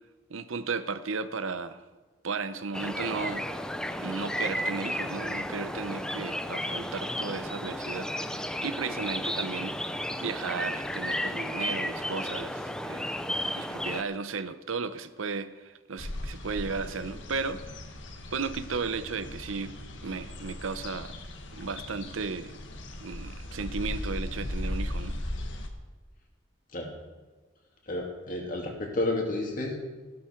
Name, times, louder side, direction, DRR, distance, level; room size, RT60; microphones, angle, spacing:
voice 1, 0.3-1.8 2.2-3.5 3.9-8.1 8.6-9.8 10.2-13.1 13.6-17.8 18.3-19.8 20.0-21.1 21.5-22.6 23.0-25.2, right 4 dB, 90° right, 12 dB, 0.8 m, -34 dB
sound 1, 2.7-14.0, left 1 dB, 5° left, 0.5 m, -33 dB
sound 2, 16.0-25.7, left 1 dB, 70° left, 1.5 m, -38 dB
voice 2, 27.9-29.8, left 2 dB, 40° left, 0 dB, 2.6 m, -31 dB
15.0 x 12.0 x 4.6 m, 1.3 s
head